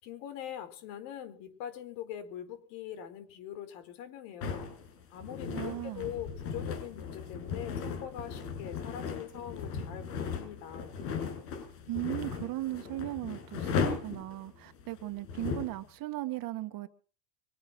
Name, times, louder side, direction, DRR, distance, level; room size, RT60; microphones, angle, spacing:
voice 1, 0.0-4.7 5.1-10.9, left 10 dB, 60° left, 4.7 m, -43 dB
sound 1, 4.4-15.8, left 6 dB, 80° left, 7.1 m, -37 dB
voice 2, 5.5-6.1 11.9-16.9, right 17 dB, 45° right, 1.7 m, -37 dB
24.0 x 9.1 x 6.1 m
supercardioid pair, 140°, 48 cm